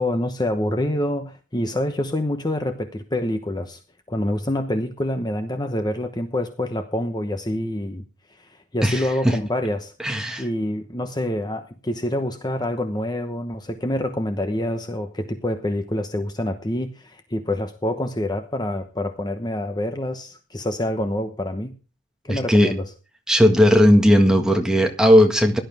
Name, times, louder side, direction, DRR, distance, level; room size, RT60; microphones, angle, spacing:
voice 1, 0.0-3.8 4.1-8.0 8.3-9.9 10.4-21.7 22.2-22.9, left 1 dB, 20° left, 1.0 m, -26 dB
voice 2, 8.8-9.4 10.0-10.4 22.3-22.7 23.3-25.6, equal, 5° right, 1.7 m, -16 dB
17.0 x 11.5 x 3.5 m
head